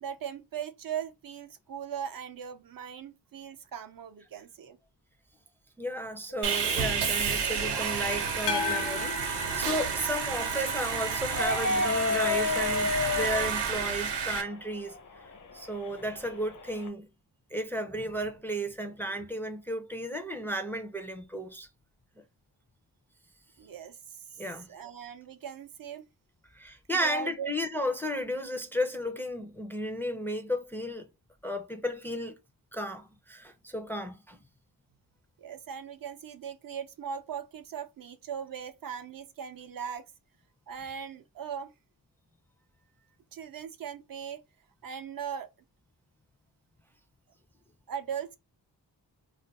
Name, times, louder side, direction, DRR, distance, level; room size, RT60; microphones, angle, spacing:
voice 1, 0.0-4.8 23.6-26.0 27.0-27.5 35.4-40.0 40.7-41.7 43.3-44.4 44.8-45.5 47.9-48.4, right 8 dB, 55° right, 0.5 m, -39 dB
voice 2, 5.8-14.9 15.5-17.1 17.5-21.7 24.4-24.7 26.5-31.1 31.4-32.4 32.7-34.4, equal, 5° left, 0.4 m, -33 dB
Sawing, 6.4-14.4, right 6 dB, 85° right, 0.8 m, -30 dB
sound 1, 8.5-10.7, left 6 dB, 85° left, 0.6 m, -35 dB
sound 2, 11.3-16.9, left 4 dB, 50° left, 0.6 m, -32 dB
2.4 x 2.1 x 3.9 m
wide cardioid pair, 90°, 41 cm